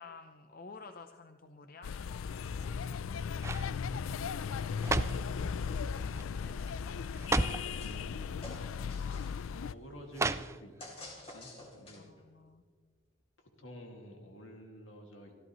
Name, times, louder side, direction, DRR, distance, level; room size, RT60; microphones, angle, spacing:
voice 1, 0.0-1.9 5.7-5.8 6.4-7.0 12.0-12.6, left 4 dB, 45° left, 6 dB, 0.6 m, -51 dB
sound 1, 1.8-9.7, left 6 dB, 90° left, 0.4 m, -37 dB
sound 2, 2.5-3.0 3.4-3.7 4.5-5.3 6.1-6.4 6.7-6.8 7.1-7.7 8.7-8.8 10.1-10.9 11.3-11.4, right 2 dB, 15° right, 0.3 m, -33 dB
voice 2, 4.5-5.8 7.5-8.4 9.7-10.8 11.3-12.1 13.4-15.3, equal, 75° left, 1 dB, 2.2 m, -51 dB
sound 3, 7.8-8.1 8.4-9.5 10.8-12.2, left 1 dB, 30° left, 3.4 m, -49 dB
25.5 x 13.5 x 3.1 m, 1.5 s
head